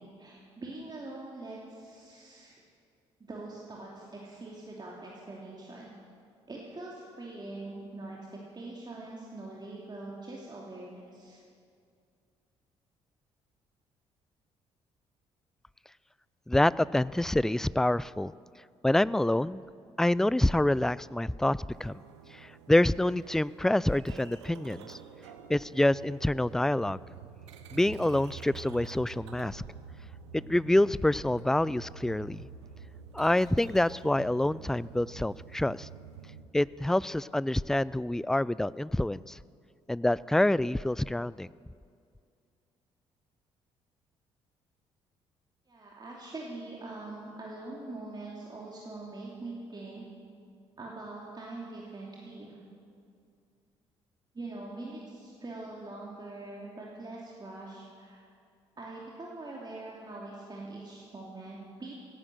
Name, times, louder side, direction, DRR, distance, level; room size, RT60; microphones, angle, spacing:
voice 1, 0.0-2.5 3.2-5.9 6.5-11.4 45.7-50.0 50.8-52.6 54.3-58.2 58.8-61.9, right 2 dB, 30° right, -3 dB, 3.0 m, -43 dB
voice 2, 16.5-18.3 18.8-19.6 20.0-22.0 22.3-25.0 25.5-27.0 27.7-29.6 30.3-32.5 33.1-35.9 36.5-39.4 39.9-41.5, left 1 dB, 5° left, 21 dB, 0.3 m, -27 dB
sound 1, 21.7-36.4, right 6 dB, 85° right, 0.9 m, -48 dB
17.0 x 10.5 x 7.8 m, 2.3 s
hypercardioid pair, 45°, 14 cm